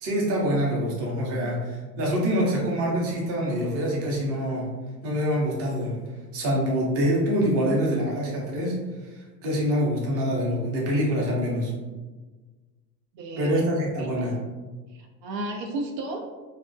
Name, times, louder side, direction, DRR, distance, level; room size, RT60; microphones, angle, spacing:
voice 1, 0.0-4.7 5.0-6.0 6.3-8.7 9.1-11.7 13.4-14.3, equal, 30° right, -3 dB, 0.6 m, -25 dB
voice 2, 13.1-13.7 14.0-14.2 14.9-16.2, right 2 dB, 75° right, 2 dB, 0.6 m, -33 dB
2.4 x 2.0 x 2.5 m, 1.3 s
supercardioid pair, 130°, 50 cm